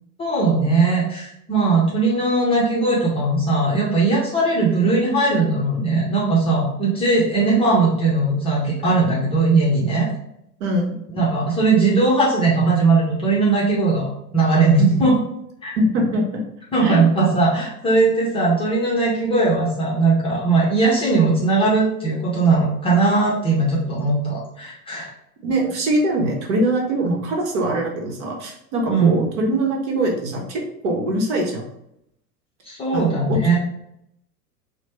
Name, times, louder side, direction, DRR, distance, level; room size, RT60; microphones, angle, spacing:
voice 1, 0.2-10.1 11.2-15.2 15.6-15.7 16.7-25.1 28.9-29.2 32.7-33.6, right 3 dB, 10° left, -6 dB, 0.6 m, -19 dB
voice 2, 10.6-11.0 15.8-16.4 16.8-17.0 25.4-31.6 32.9-33.4, right 1 dB, 50° right, 1 dB, 1.0 m, -22 dB
4.0 x 2.1 x 3.3 m, 0.77 s
figure-of-eight pair, 90°, 47 cm